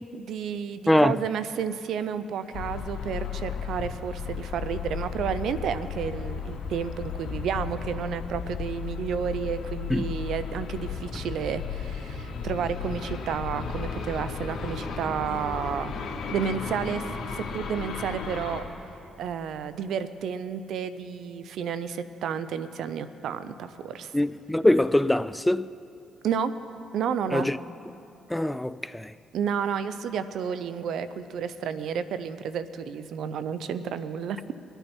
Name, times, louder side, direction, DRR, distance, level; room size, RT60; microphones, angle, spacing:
voice 1, 0.1-16.0 16.3-17.0 17.3-18.6 19.2-24.1 26.2-26.5 26.9-27.5 29.3-34.5, right 7 dB, 75° right, 0.6 m, -31 dB
voice 2, 0.9-1.2 9.9-10.1 24.1-25.7 27.3-27.6 28.3-29.1, left 1 dB, 10° left, 0.3 m, -23 dB
sound 1, 2.5-18.6, left 6 dB, 60° left, 2.3 m, -34 dB
23.5 x 9.0 x 4.4 m
supercardioid pair, 65°, 0 cm